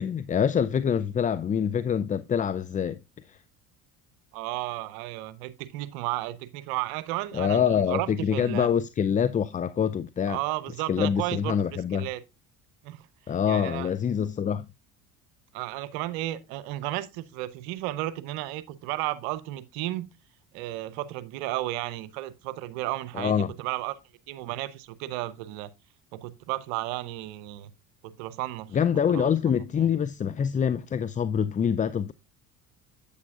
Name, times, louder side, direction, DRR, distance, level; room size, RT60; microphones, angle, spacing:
voice 1, 0.0-3.0 3.3-3.4 7.3-10.4 10.9-12.1 13.3-14.7 23.1-23.5 28.7-32.1, left 8 dB, 20° left, 0.4 m, -25 dB
voice 2, 4.3-8.7 10.3-11.6 11.9-12.2 12.8-13.1 13.5-13.9 15.5-20.1 20.5-24.0 24.3-25.7 26.1-27.7 28.0-28.8 29.1-29.3 29.8-29.9, right 16 dB, 75° right, 0.8 m, -33 dB
8.3 x 8.2 x 2.4 m
hypercardioid pair, 75°, 43 cm